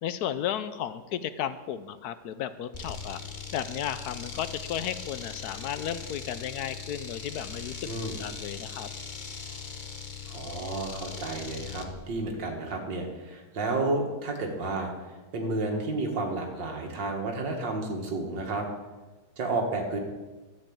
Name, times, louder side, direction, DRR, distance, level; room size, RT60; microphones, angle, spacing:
voice 1, 0.0-3.2 3.5-7.9 8.2-8.9, left 10 dB, 70° left, 13 dB, 1.0 m, -34 dB
sound 1, 2.7-11.9, left 6 dB, 35° left, 0.9 m, -40 dB
voice 2, 7.9-8.2 10.3-14.9 15.3-18.7 19.4-20.0, right 2 dB, 85° right, 1 dB, 2.4 m, -31 dB
12.5 x 5.4 x 8.6 m, 1.2 s
omnidirectional pair, 1.9 m